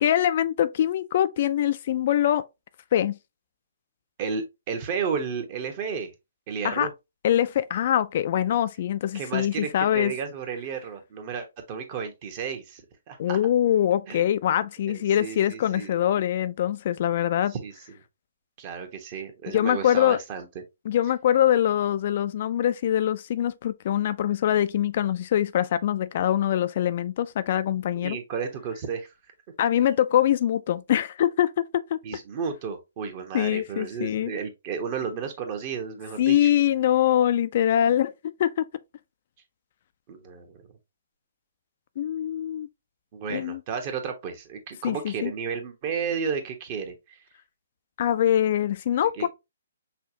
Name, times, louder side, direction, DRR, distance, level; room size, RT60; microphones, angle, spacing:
voice 1, 0.0-2.4 2.9-3.2 6.6-6.9 7.2-10.1 13.2-17.5 19.5-20.2 20.9-28.2 29.6-32.0 33.3-34.3 36.2-38.1 38.4-38.6 42.0-42.7 43.3-43.6 44.8-45.3 48.0-49.3, left 11 dB, 50° left, 0.3 m, -23 dB
voice 2, 4.2-6.1 6.5-6.9 9.1-12.8 13.1-13.4 14.1-14.2 14.9-15.9 17.5-17.7 18.6-20.5 28.0-29.1 32.0-36.5 40.1-40.6 43.1-47.2 49.1-49.3, right 6 dB, 35° right, 1.1 m, -33 dB
5.6 x 2.4 x 2.8 m
hypercardioid pair, 135°, 0 cm